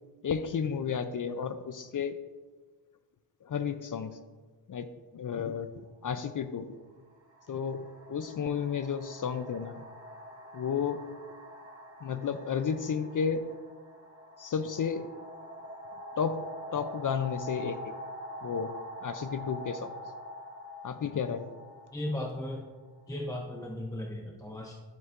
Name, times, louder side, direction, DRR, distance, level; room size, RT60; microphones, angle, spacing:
voice 1, 0.2-2.2 3.4-4.1 4.7-6.7 7.5-9.8 10.5-11.0 12.0-13.5 14.4-15.1 16.2-17.9 18.4-18.7 19.0-19.9 20.8-21.5, left 6 dB, 50° left, 10 dB, 0.5 m, -32 dB
sound 1, 5.8-6.0 6.9-23.6, equal, 35° right, 2.8 m, -45 dB
voice 2, 21.9-22.7 23.1-24.8, left 1 dB, 10° left, -1 dB, 0.6 m, -36 dB
11.0 x 7.7 x 2.5 m, 1.4 s
wide cardioid pair, 125°, 41 cm